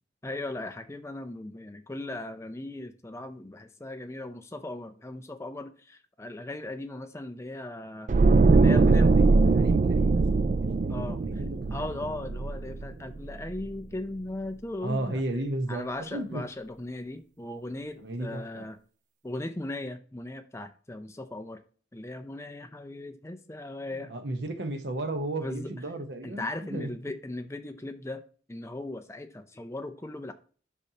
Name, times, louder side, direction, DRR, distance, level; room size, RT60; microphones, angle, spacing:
voice 1, 0.2-8.1 8.5-9.1 10.9-11.2 11.7-15.2 15.7-18.8 19.2-21.6 21.9-24.1 25.4-25.7 26.2-28.2 28.5-30.3, left 2 dB, 15° left, 0.5 m, -38 dB
sound 1, 8.1-13.2 13.5-13.7, right 3 dB, 40° right, 0.3 m, -22 dB
voice 2, 8.6-11.8 12.0-12.1 14.8-16.4 18.0-18.7 23.9-26.9, right 1 dB, 70° right, 1.0 m, -34 dB
8.4 x 5.3 x 2.9 m
head